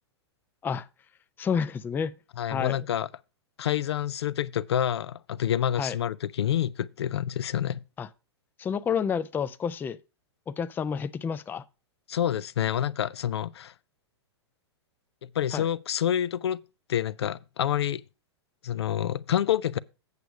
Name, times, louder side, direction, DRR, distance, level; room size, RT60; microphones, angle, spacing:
voice 1, 1.4-2.2 2.5-2.8 5.8-6.0 8.0-8.1 8.6-10.0 10.5-11.6 15.5-15.7, left 7 dB, 15° left, 0.4 m, -29 dB
voice 2, 2.4-3.1 3.6-7.8 12.1-13.7 15.3-16.6 16.9-18.0 18.6-19.8, left 10 dB, 70° left, 0.4 m, -28 dB
8.2 x 6.9 x 4.7 m
hypercardioid pair, 105°, 14 cm